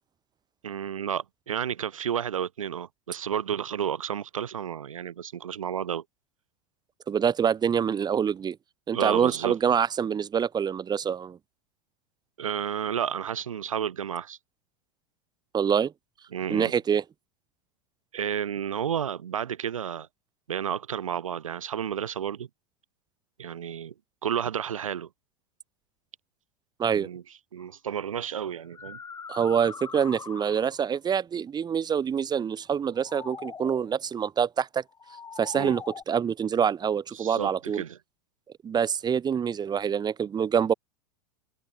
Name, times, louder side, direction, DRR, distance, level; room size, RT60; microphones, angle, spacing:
voice 1, 0.6-6.0 8.9-9.5 12.4-14.4 16.3-16.7 18.1-20.1 20.5-22.5 23.4-23.9 24.2-25.1 26.9-27.2 27.5-29.0 35.5-35.7 37.1-38.0, right 9 dB, 75° right, 2.2 m, -31 dB
voice 2, 7.1-8.6 8.9-11.4 15.5-15.9 16.5-17.0 26.8-27.1 29.3-34.8 35.4-37.8 38.6-40.7, right 7 dB, 25° right, 2.6 m, -26 dB
sound 1, 27.6-27.7 28.5-30.9 32.8-33.9 34.9-36.0, left 6 dB, 20° left, 2.3 m, -42 dB
open air
figure-of-eight pair, 85°, 18 cm